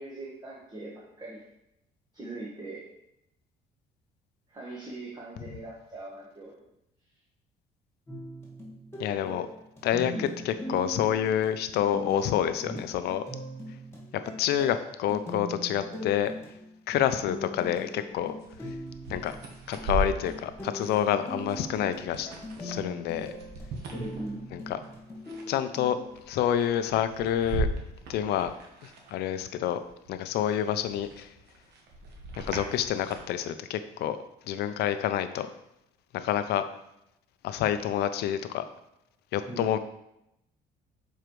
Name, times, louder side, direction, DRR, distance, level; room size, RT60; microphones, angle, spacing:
voice 1, 0.0-1.4 2.1-2.8 4.5-6.6 10.0-10.3 12.6-12.8 23.9-24.5 39.4-39.7, right 1 dB, 25° right, -4 dB, 1.2 m, -40 dB
sound 1, 8.1-26.0, equal, 15° left, 1.8 m, -41 dB
voice 2, 9.0-9.5 9.8-13.2 14.4-16.3 16.9-18.3 19.1-19.3 19.7-22.3 22.6-23.3 24.5-24.8 25.5-26.0 26.3-27.7 28.1-28.5 29.1-29.8 30.1-31.3 32.4-34.2 34.5-35.5 36.1-36.6 37.4-38.6 39.3-39.8, left 10 dB, 75° left, 11 dB, 0.5 m, -28 dB
sound 2, 17.1-17.3 17.7-29.5 29.8-33.3, right 2 dB, 75° right, 1.3 m, -38 dB
6.8 x 4.6 x 3.1 m, 0.83 s
cardioid pair, 110°, 17 cm